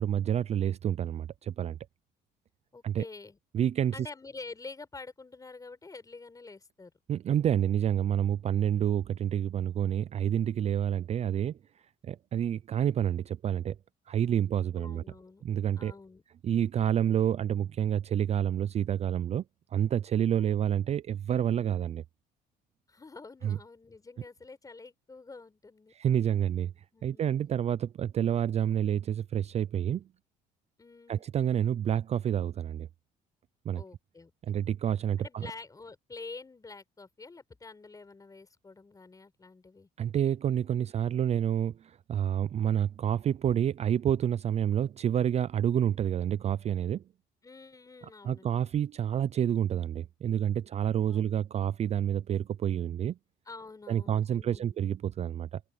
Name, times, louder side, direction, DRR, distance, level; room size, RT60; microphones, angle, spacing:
voice 1, 0.0-1.8 2.8-3.0 3.5-4.0 7.1-11.6 12.0-13.8 14.1-15.0 15.4-15.9 16.4-19.4 19.7-22.0 23.4-23.6 26.0-26.7 27.0-30.0 31.1-32.9 33.7-33.8 34.4-35.5 40.0-47.0 48.2-53.2 53.9-55.6, right 9 dB, 40° right, 0.4 m, -28 dB
voice 2, 2.7-3.4 3.9-6.9 14.7-15.4 15.8-16.2 20.3-20.7 22.9-25.9 26.9-27.5 30.8-31.2 33.7-34.6 35.2-39.9 47.4-48.6 51.1-51.2 53.5-54.7, left 3 dB, 20° left, 5.0 m, -47 dB
cardioid pair, 110°, 17 cm